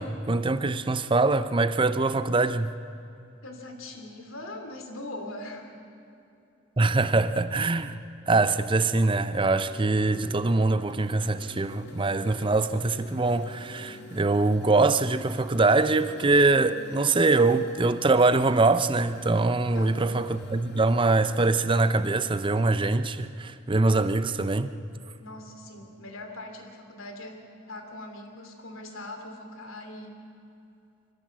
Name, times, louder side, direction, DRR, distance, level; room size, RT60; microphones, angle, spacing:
voice 1, 0.0-2.7 6.8-8.0 8.3-24.7, right 3 dB, 25° right, 0.6 m, -23 dB
voice 2, 3.4-5.7 19.7-20.3 25.2-30.2, left 1 dB, 75° left, 2.7 m, -41 dB
sound 1, 9.5-22.9, left 1 dB, 55° left, 1.9 m, -47 dB
25.0 x 15.0 x 7.5 m
head